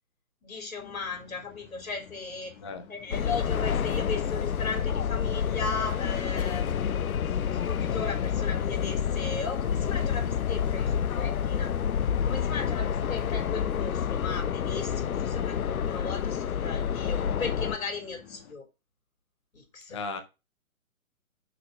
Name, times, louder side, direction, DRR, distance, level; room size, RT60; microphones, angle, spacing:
voice 1, 0.4-2.5 2.9-11.7 12.2-18.7 19.5-20.0, left 4 dB, 75° left, 3.8 m, -37 dB
sound 1, 0.8-18.5, left 8 dB, 40° left, 1.3 m, -51 dB
sound 2, 3.1-17.8, left 8 dB, 90° left, 0.7 m, -28 dB
voice 2, 19.9-20.2, left 4 dB, 20° left, 0.5 m, -35 dB
6.6 x 4.3 x 6.1 m
hypercardioid pair, 145°, 41 cm